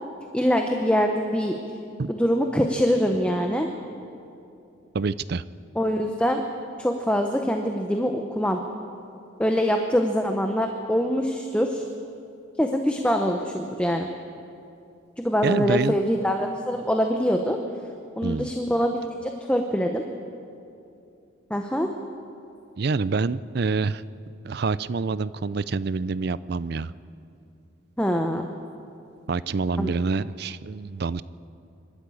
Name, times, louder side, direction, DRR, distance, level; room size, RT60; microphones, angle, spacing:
voice 1, 0.3-1.6 2.1-3.7 5.7-6.4 6.8-8.6 9.4-11.9 12.6-14.1 15.2-17.6 18.2-20.0 21.5-21.9 28.0-28.5 29.8-29.9, equal, 5° left, 4 dB, 0.8 m, -24 dB
voice 2, 4.9-5.4 15.4-16.0 18.2-18.5 22.8-24.0 24.4-26.9 29.3-31.2, right 4 dB, 50° right, 17 dB, 0.4 m, -26 dB
24.5 x 12.5 x 8.4 m, 2.6 s
head